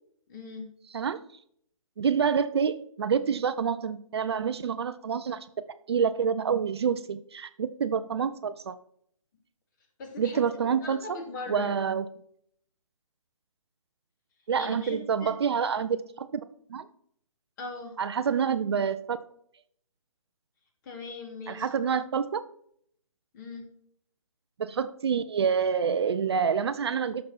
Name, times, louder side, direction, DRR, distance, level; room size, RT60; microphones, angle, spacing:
voice 1, 0.3-0.7 10.0-10.5 10.8-11.7 14.6-15.3 17.6-18.0 20.8-21.8 23.3-23.7, left 3 dB, 35° left, 3 dB, 2.9 m, -39 dB
voice 2, 2.0-5.5 5.9-8.7 10.2-11.2 11.5-12.0 14.5-16.4 16.7-16.9 18.0-19.2 21.5-22.4 24.6-27.2, right 6 dB, 50° right, 12 dB, 0.7 m, -27 dB
13.5 x 6.5 x 4.4 m, 0.67 s
figure-of-eight pair, 140°, 18 cm